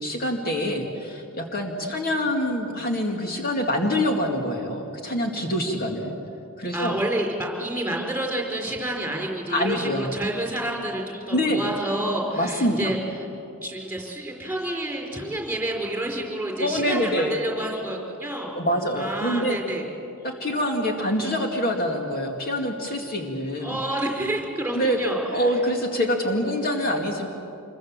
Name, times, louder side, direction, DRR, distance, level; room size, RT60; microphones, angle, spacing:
voice 1, 0.0-6.1 6.6-7.0 9.5-10.1 11.3-11.6 12.4-12.8 16.6-17.4 18.6-19.6 20.2-23.8 24.7-27.3, equal, 45° left, 2 dB, 2.1 m, -25 dB
voice 2, 6.7-13.3 13.6-18.5 19.0-19.8 23.6-25.5, right 1 dB, 10° right, 0 dB, 4.4 m, -29 dB
26.5 x 22.5 x 7.4 m, 2.9 s
head